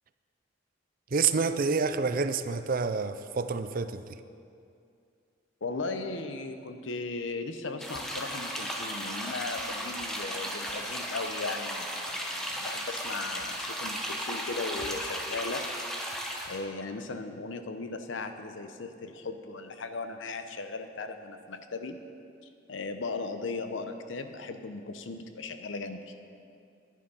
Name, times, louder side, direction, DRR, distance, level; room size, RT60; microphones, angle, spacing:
voice 1, 1.1-4.2, right 5 dB, 50° right, 11 dB, 0.5 m, -28 dB
voice 2, 5.6-15.7 16.5-22.0 22.7-26.1, left 3 dB, 80° left, 8 dB, 0.8 m, -37 dB
sound 1, 7.8-16.6, equal, 5° left, 1.0 m, -35 dB
10.5 x 10.5 x 5.5 m, 2.5 s
head